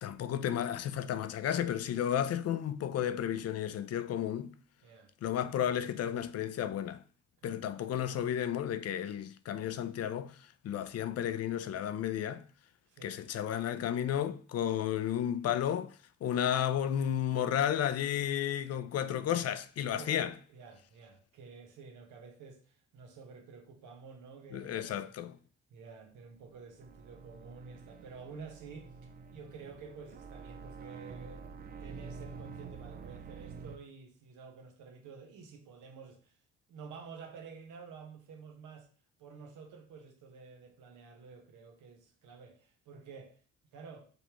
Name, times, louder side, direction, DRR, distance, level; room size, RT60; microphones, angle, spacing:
voice 1, 0.0-4.5 5.2-7.0 7.4-12.4 13.0-15.9 16.2-20.3 24.5-25.4, left 10 dB, 55° left, 0.5 m, -32 dB
voice 2, 7.4-7.7 12.9-13.2 19.8-25.1 25.7-28.9 29.3-36.4 36.7-38.9 39.2-43.4 43.7-44.1, right 5 dB, 80° right, 1.1 m, -50 dB
sound 1, 26.3-33.8, right 5 dB, 30° right, 0.4 m, -48 dB
5.2 x 3.4 x 3.0 m
cardioid pair, 90°, 30 cm